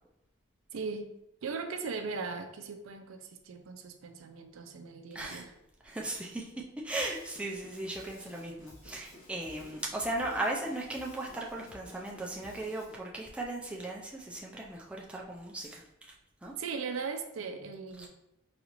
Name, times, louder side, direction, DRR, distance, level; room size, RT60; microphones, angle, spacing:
voice 1, 0.7-1.1 1.4-5.5 16.6-18.1, right 4 dB, 90° right, 7 dB, 0.4 m, -38 dB
voice 2, 5.8-6.5 6.8-16.1 16.4-16.5 18.0-18.1, right 1 dB, 5° right, -2 dB, 0.4 m, -37 dB
Drum kit / Drum, 7.0-13.0, left 1 dB, 70° left, 1.3 m, -54 dB
4.0 x 2.4 x 3.0 m, 0.83 s
head